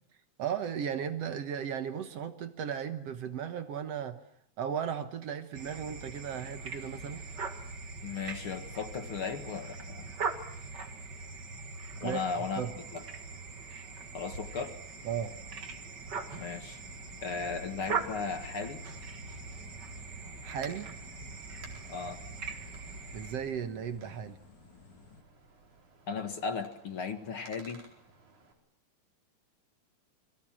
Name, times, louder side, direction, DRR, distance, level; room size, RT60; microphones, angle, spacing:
voice 1, 0.4-4.2 4.6-7.2 12.0-12.2 12.6-12.7 15.1-15.3 20.4-20.9 23.1-24.4, right 8 dB, 65° right, 9 dB, 2.2 m, -35 dB
sound 1, 5.5-23.4, right 4 dB, 40° right, 2.2 m, -41 dB
voice 2, 8.0-10.1 12.0-12.7 12.9-13.0 14.1-14.8 16.3-16.8 17.2-18.8 21.9-22.2 26.1-27.8, left 5 dB, 50° left, 7 dB, 2.4 m, -36 dB
Wind, 12.5-28.5, right 3 dB, 85° right, 5.8 m, -55 dB
sound 2, 14.9-25.2, left 6 dB, 75° left, 3.5 m, -56 dB
29.0 x 23.5 x 7.5 m, 0.69 s
omnidirectional pair, 3.3 m